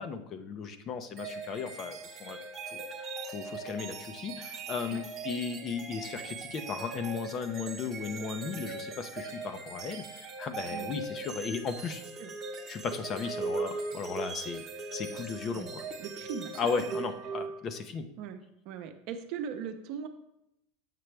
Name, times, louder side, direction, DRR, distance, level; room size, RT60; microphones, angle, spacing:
voice 1, 0.0-2.4 2.7-2.8 3.2-12.0 12.7-14.6 14.9-15.8 16.5-18.1, left 5 dB, 35° left, 8 dB, 0.6 m, -36 dB
sound 1, 1.2-17.8, right 4 dB, 30° right, 1.0 m, -40 dB
voice 2, 16.0-16.5 18.2-18.4 18.6-20.1, right 7 dB, 55° right, 6 dB, 0.8 m, -39 dB
7.6 x 5.7 x 3.3 m, 0.82 s
supercardioid pair, 135°, 0 cm